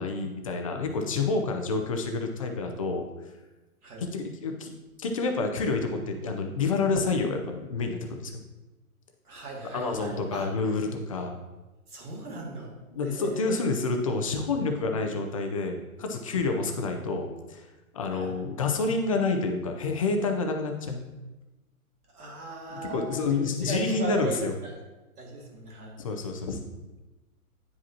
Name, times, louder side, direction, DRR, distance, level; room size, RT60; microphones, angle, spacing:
voice 1, 0.0-3.0 4.0-4.7 5.0-8.4 9.7-11.4 12.9-17.6 17.9-21.0 22.7-24.5 26.0-26.6, left 3 dB, 25° left, 4 dB, 0.4 m, -28 dB
voice 2, 9.3-10.5 11.9-12.7 13.0-13.5 18.1-18.3 22.1-24.4 25.2-26.0, right 3 dB, 90° right, -2 dB, 2.3 m, -38 dB
9.3 x 5.1 x 2.8 m, 1.1 s
hypercardioid pair, 145°, 44 cm